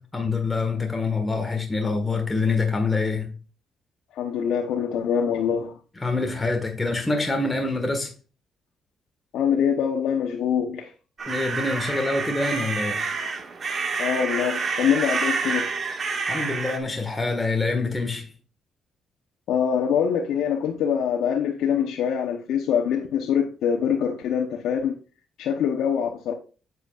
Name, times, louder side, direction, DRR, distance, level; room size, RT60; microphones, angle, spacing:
voice 1, 0.1-3.3 6.0-8.1 11.3-13.1 16.3-18.3, left 3 dB, 15° left, 1.6 m, -25 dB
voice 2, 4.1-5.8 9.3-10.9 14.0-15.7 19.5-25.0 25.4-26.3, left 8 dB, 80° left, 0.9 m, -24 dB
sound 1, 11.2-16.8, right 4 dB, 45° right, 1.7 m, -28 dB
8.0 x 7.9 x 2.4 m
cardioid pair, 90°, 0 cm